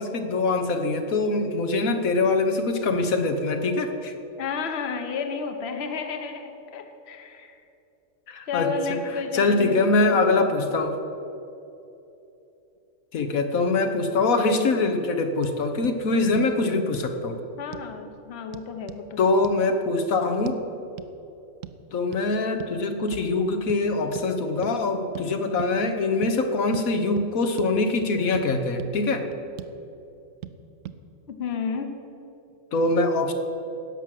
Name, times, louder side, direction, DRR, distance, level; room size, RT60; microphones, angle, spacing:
voice 1, 0.0-4.1 8.3-8.7 9.3-11.0 13.1-17.4 19.2-20.6 21.9-29.3 32.7-33.3, left 3 dB, 85° left, 6 dB, 1.5 m, -23 dB
voice 2, 4.4-7.6 8.5-10.2 17.6-19.3 31.3-31.9, left 5 dB, 55° left, 6 dB, 1.2 m, -32 dB
sound 1, 15.4-15.6 15.8-16.0 16.4-16.5 16.9-17.1 17.7-17.9 18.5-19.0 19.4-19.6 20.5-20.6 21.0-21.1 21.6-21.8 22.1-22.3 22.6-22.8 23.1-23.3 23.7-23.8 24.1-24.3 24.6-24.8 25.1-25.3 25.6-25.7 26.2-26.4 26.7-26.9 27.2-27.3 27.6-27.7 28.0-28.5 28.8-28.9 29.3-29.8 30.4-30.6 30.8-31.0, right 11 dB, 75° right, 1.0 m, -39 dB
16.5 x 6.1 x 7.6 m, 2.9 s
omnidirectional pair, 1.4 m